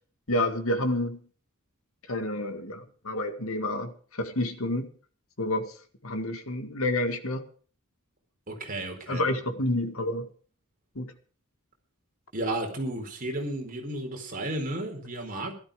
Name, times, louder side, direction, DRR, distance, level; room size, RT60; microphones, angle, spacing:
voice 1, 0.3-1.2 2.1-4.9 5.4-5.7 6.0-7.5 9.1-10.3 11.0-11.1, left 1 dB, 70° left, 2.0 m, -29 dB
voice 2, 8.5-9.2 12.3-15.5, right 1 dB, 40° right, 4.4 m, -33 dB
16.5 x 13.0 x 5.0 m
head